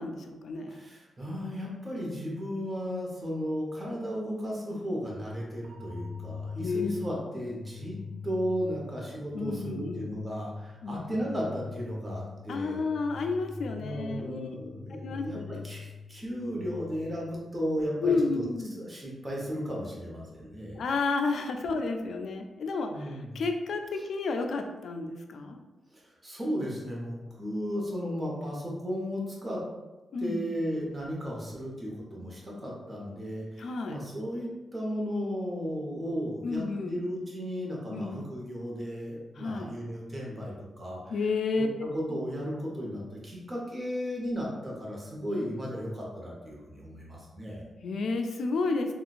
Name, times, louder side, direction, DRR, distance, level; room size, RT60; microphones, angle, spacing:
voice 1, 0.0-0.8 6.6-6.9 7.3-7.5 9.3-10.1 10.8-11.1 12.5-14.5 15.0-15.6 18.0-18.8 20.8-25.6 30.1-30.5 33.6-34.0 36.4-37.0 37.9-38.2 39.4-39.7 41.1-41.9 47.8-48.9, left 3 dB, 70° left, 5 dB, 0.3 m, -31 dB
voice 2, 0.7-8.0 8.2-12.8 13.8-18.4 18.8-20.8 22.9-23.4 25.9-29.6 30.2-41.1 41.6-47.7, equal, 25° right, -3 dB, 0.9 m, -35 dB
sound 1, 5.6-17.6, left 4 dB, 70° right, 0.5 m, -43 dB
3.7 x 2.3 x 2.4 m, 1.1 s
cardioid pair, 90°, 0 cm